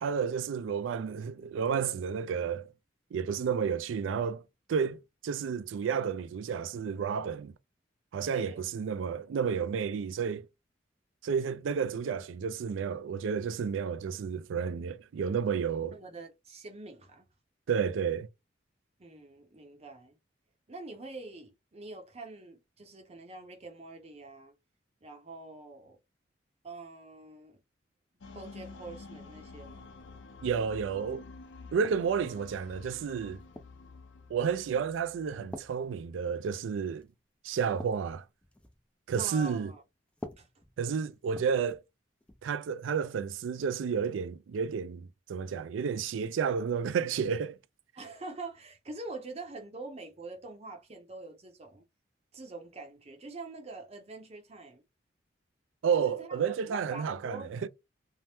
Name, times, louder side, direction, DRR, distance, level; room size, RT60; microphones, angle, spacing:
voice 1, 0.0-2.7 3.1-4.4 4.7-5.0 5.2-7.5 8.1-10.5 11.2-16.0 17.7-18.3 30.4-31.3 31.7-33.4 34.3-37.1 37.4-38.2 39.1-39.7 40.8-41.8 42.4-47.6 55.8-57.7, right 6 dB, 85° right, 0.3 m, -31 dB
voice 2, 15.9-17.3 19.0-20.1 20.7-24.5 25.0-26.0 26.6-27.6 28.3-29.9 39.2-39.8 40.4-40.5 48.0-51.8 52.3-54.8 55.9-57.5, right 2 dB, 35° right, 0.6 m, -45 dB
sound 1, 28.2-36.3, left 3 dB, 80° left, 0.5 m, -50 dB
sound 2, 31.8-32.4 33.0-33.9 34.5-34.8 35.5-36.7 37.0-37.2 37.5-38.9 40.1-41.9 42.2-42.5 43.6-43.7, left 1 dB, 5° left, 0.3 m, -48 dB
2.7 x 2.0 x 3.3 m
head